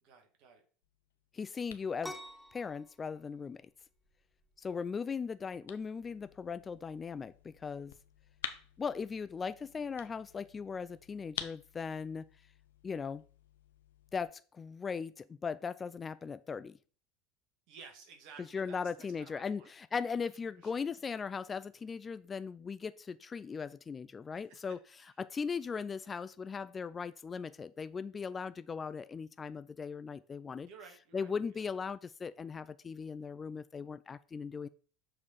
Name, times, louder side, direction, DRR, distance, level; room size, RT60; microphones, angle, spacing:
voice 1, 0.0-0.6 17.7-19.7 20.6-20.8 24.3-24.4 25.0-25.1 30.6-31.6, right 6 dB, 55° right, 4 dB, 2.0 m, -55 dB
sound 1, 0.8-14.3, left 10 dB, 70° left, 0.6 m, -51 dB
voice 2, 1.3-2.1 2.5-3.6 4.6-7.9 8.8-12.3 12.8-13.2 14.1-16.8 18.5-24.8 25.2-30.7 31.1-34.7, left 5 dB, 25° left, 14 dB, 0.4 m, -38 dB
sound 2, 2.0-9.4, left 1 dB, ahead, 0.9 m, -53 dB
7.0 x 4.3 x 4.3 m, 0.41 s
figure-of-eight pair, 75°, 0 cm